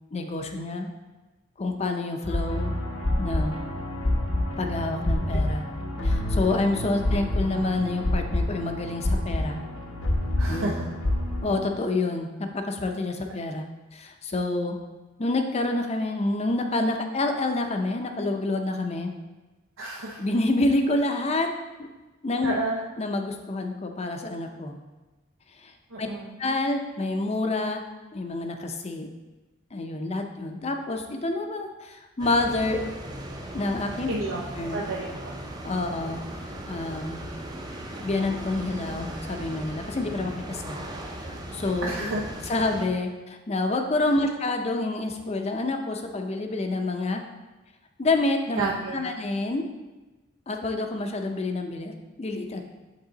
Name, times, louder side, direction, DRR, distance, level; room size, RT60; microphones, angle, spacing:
voice 1, 0.1-0.9 1.6-2.7 3.2-3.6 4.6-5.7 6.0-9.6 10.5-10.7 11.4-13.6 13.9-14.8 15.2-19.1 20.2-21.5 21.8-21.9 22.2-22.6 23.0-24.8 25.6-25.7 26.0-26.1 26.4-27.8 28.1-29.1 29.7-32.8 33.5-34.1 34.6-34.8 35.6-36.2 36.7-37.2 38.0-40.8 41.2-41.9 42.5-47.2 48.0-48.7 48.9-49.6 50.5-52.6, left 2 dB, 30° left, 4 dB, 0.5 m, -28 dB
sound 1, 2.2-11.6, left 1 dB, 75° left, 1.0 m, -27 dB
voice 2, 10.4-10.9 19.8-20.2 22.4-22.8 25.9-26.4 34.1-34.4 34.7-35.3 41.8-42.2 48.6-49.0, right 2 dB, 75° right, -2 dB, 0.6 m, -30 dB
sound 2, 32.2-42.9, right 1 dB, 20° right, 0.6 m, -38 dB
8.1 x 3.7 x 3.9 m, 1.2 s
head